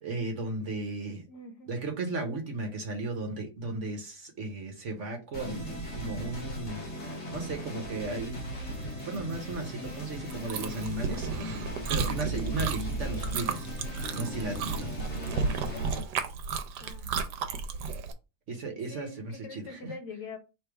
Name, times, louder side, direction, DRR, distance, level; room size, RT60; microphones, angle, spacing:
voice 1, 0.0-1.2 1.7-6.8 7.3-8.4 9.0-13.6 14.1-14.9 18.5-19.9, right 2 dB, 50° right, 1.1 m, -35 dB
voice 2, 1.3-1.7 15.1-15.4 15.7-15.8 16.8-17.2 18.9-20.4, left 4 dB, 75° left, 1.6 m, -44 dB
sound 1, 5.3-16.0, right 1 dB, 45° left, 1.5 m, -37 dB
Chewing mastication, 10.3-18.1, right 5 dB, 85° right, 1.3 m, -33 dB
sound 2, 11.1-16.3, equal, 25° right, 0.6 m, -50 dB
3.3 x 3.3 x 4.6 m
omnidirectional pair, 1.8 m